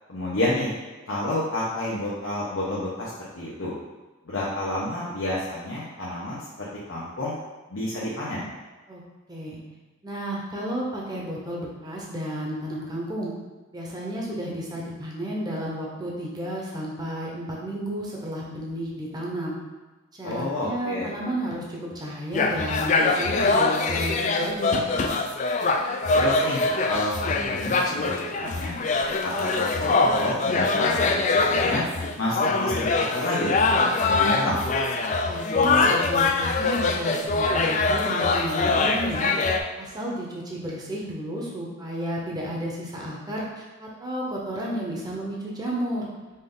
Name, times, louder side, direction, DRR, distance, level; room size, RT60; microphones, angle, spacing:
voice 1, 0.1-0.7 1.1-3.7 4.3-7.3 7.7-8.5 20.2-21.1 26.1-28.8 29.2-31.8 32.2-34.6, left 1 dB, 75° left, -8 dB, 0.9 m, -30 dB
voice 2, 9.3-9.6 10.0-13.3 13.7-19.6 20.2-24.8 35.2-39.3 39.8-46.1, right 1 dB, 20° right, -3 dB, 0.8 m, -32 dB
sound 1, 22.3-39.6, left 3 dB, 35° left, 0.3 m, -23 dB
5.3 x 2.6 x 3.8 m, 1.2 s
head